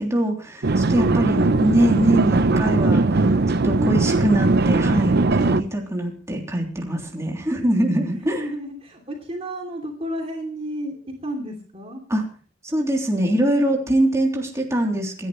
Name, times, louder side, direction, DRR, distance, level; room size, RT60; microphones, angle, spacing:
voice 1, 0.0-3.3 3.6-8.4 12.1-12.2 12.6-15.3, right 1 dB, 15° right, 0 dB, 3.3 m, -23 dB
sound 1, 0.6-5.6, right 3 dB, 55° right, 0.7 m, -19 dB
voice 2, 1.2-1.7 3.8-4.1 8.2-12.0, right 1 dB, 35° right, 1 dB, 2.9 m, -31 dB
27.0 x 11.0 x 3.2 m, 0.41 s
head